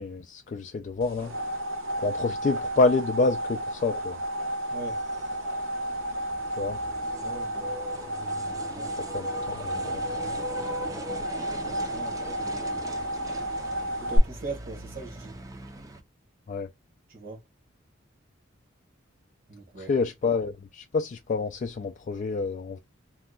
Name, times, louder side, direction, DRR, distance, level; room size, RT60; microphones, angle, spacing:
voice 1, 0.0-1.3 2.0-4.2 6.6-6.8 9.1-10.0 16.5-16.7 19.8-22.8, left 3 dB, 40° left, 0.3 m, -28 dB
sound 1, 1.0-14.2, equal, 85° right, 1.1 m, -32 dB
voice 2, 4.7-5.0 7.2-7.7 8.7-8.9 11.5-12.9 14.0-15.4 17.1-17.4 19.5-19.9, right 3 dB, 50° right, 1.0 m, -41 dB
sound 2, 4.8-16.0, equal, 20° right, 0.5 m, -41 dB
2.8 x 2.3 x 3.6 m
head